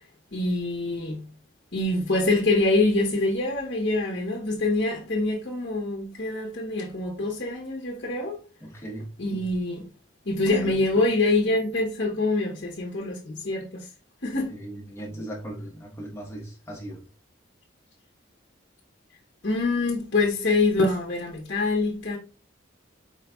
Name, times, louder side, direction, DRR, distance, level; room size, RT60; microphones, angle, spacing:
voice 1, 0.3-1.2 1.7-8.4 9.2-9.9 10.3-13.9 14.2-14.5 19.4-22.2, left 2 dB, 55° left, 0.9 m, -25 dB
voice 2, 8.6-9.4 10.4-11.2 14.5-17.0, right 1 dB, 15° left, 1.0 m, -38 dB
4.7 x 4.0 x 2.3 m
head